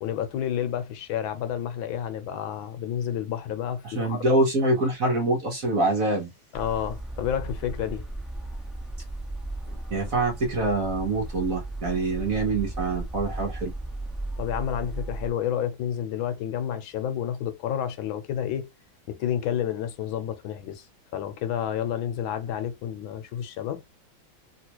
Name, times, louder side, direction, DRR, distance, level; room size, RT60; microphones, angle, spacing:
voice 1, 0.0-4.4 6.5-8.1 14.4-18.7 19.1-20.9 21.1-23.8, left 9 dB, 75° left, 1.4 m, -30 dB
voice 2, 3.8-6.3 9.9-13.7, right 2 dB, 55° right, 1.0 m, -25 dB
sound 1, 6.5-15.3, right 2 dB, ahead, 0.4 m, -35 dB
3.1 x 3.0 x 2.8 m
omnidirectional pair, 2.3 m